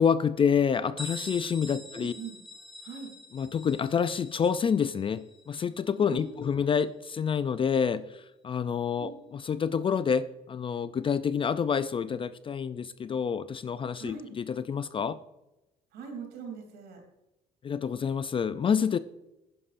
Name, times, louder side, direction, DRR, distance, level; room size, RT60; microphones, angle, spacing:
voice 1, 0.0-2.1 3.3-15.2 17.6-19.0, left 7 dB, 30° left, 14 dB, 0.4 m, -28 dB
Bell, 1.0-6.5, left 1 dB, ahead, 2.4 m, -46 dB
voice 2, 1.9-2.4 2.8-3.1 6.1-6.5 9.0-9.1 14.0-14.3 15.9-17.0, right 5 dB, 80° right, 3 dB, 3.0 m, -41 dB
11.0 x 9.8 x 2.6 m, 0.94 s
cardioid pair, 110°, 17 cm